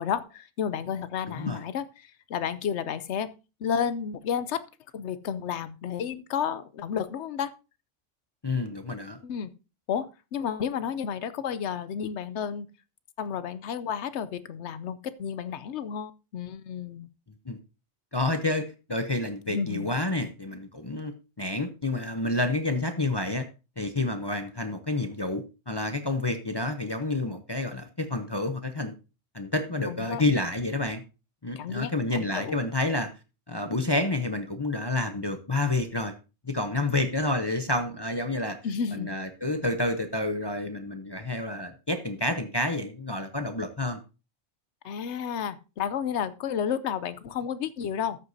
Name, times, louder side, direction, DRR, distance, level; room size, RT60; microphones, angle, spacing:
voice 1, 0.0-3.3 3.6-4.6 4.9-7.5 9.2-9.5 9.9-12.7 13.2-17.1 19.5-19.9 29.9-30.2 31.6-32.6 38.6-39.1 44.8-48.2, left 8 dB, 65° left, 14 dB, 0.9 m, -31 dB
voice 2, 8.4-9.2 17.5-17.6 18.1-23.4 23.8-28.9 29.3-31.0 31.4-33.1 33.5-36.1 36.4-38.6 38.9-44.0, left 2 dB, 30° left, 7 dB, 0.5 m, -29 dB
13.5 x 8.0 x 2.7 m, 0.31 s
omnidirectional pair, 1.4 m